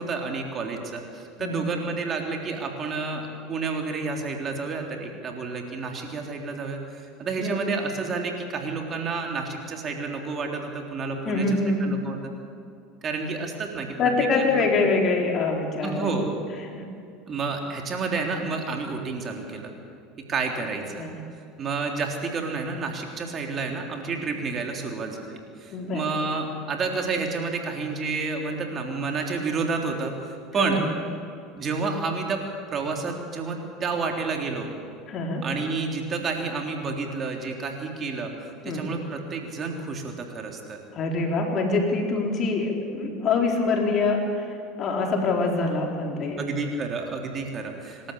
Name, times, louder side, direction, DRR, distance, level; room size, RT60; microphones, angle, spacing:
voice 1, 0.0-12.2 13.0-14.0 14.3-14.7 15.8-16.3 17.3-19.7 20.3-21.0 21.6-30.8 31.6-32.4 32.7-34.7 35.4-40.8 46.4-48.1, right 4 dB, 40° right, 2 dB, 3.5 m, -30 dB
voice 2, 11.2-11.9 14.0-16.3 16.7-16.8 21.0-21.2 25.7-26.0 30.5-30.9 35.1-35.4 38.6-39.0 40.9-46.4, left 3 dB, 45° left, 1 dB, 4.4 m, -25 dB
26.5 x 13.0 x 8.5 m, 2.5 s
hypercardioid pair, 80°, 0 cm